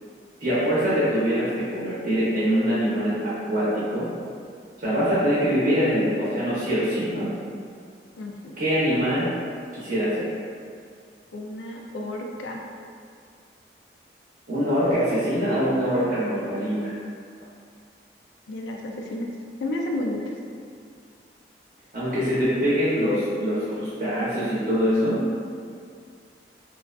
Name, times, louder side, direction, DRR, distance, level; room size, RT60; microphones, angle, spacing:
voice 1, 0.4-4.1 4.8-7.3 8.6-9.3 9.7-10.3 14.5-16.9 21.9-25.3, equal, 50° right, -11 dB, 0.6 m, -24 dB
voice 2, 8.2-8.6 11.3-12.6 18.5-19.3 19.6-20.3, left 1 dB, 85° left, 0 dB, 0.3 m, -31 dB
2.4 x 2.3 x 2.2 m, 2.2 s
head